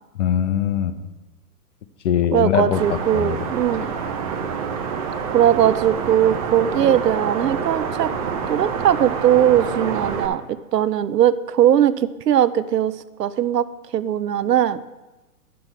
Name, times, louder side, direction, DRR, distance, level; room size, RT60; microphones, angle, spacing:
voice 1, 0.2-0.9 2.0-3.4, left 9 dB, 50° left, 10 dB, 0.8 m, -21 dB
voice 2, 2.3-3.9 5.3-8.1 8.5-13.7 13.9-14.8, right 10 dB, 85° right, 15 dB, 0.6 m, -19 dB
sound 1, 2.7-10.3, right 6 dB, 25° right, 0.6 m, -27 dB
11.0 x 6.2 x 4.6 m, 1.1 s
hypercardioid pair, 135°, 47 cm